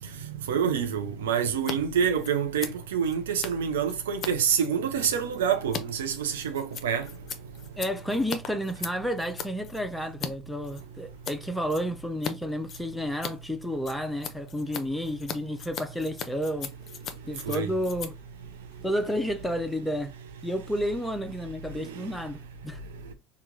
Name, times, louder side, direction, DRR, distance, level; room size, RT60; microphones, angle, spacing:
voice 1, 0.2-7.1 17.4-17.7 21.8-22.1, right 7 dB, 80° right, 0.6 m, -27 dB
Scissors, 1.5-1.8 2.0-10.3 10.6-11.4 11.7-12.3 12.6-19.4, left 7 dB, 45° left, 0.6 m, -39 dB
voice 2, 7.8-16.7 17.2-18.2 18.8-20.1 20.4-22.8, equal, 5° left, 0.6 m, -31 dB
3.0 x 2.4 x 3.6 m
hypercardioid pair, 70°, 0 cm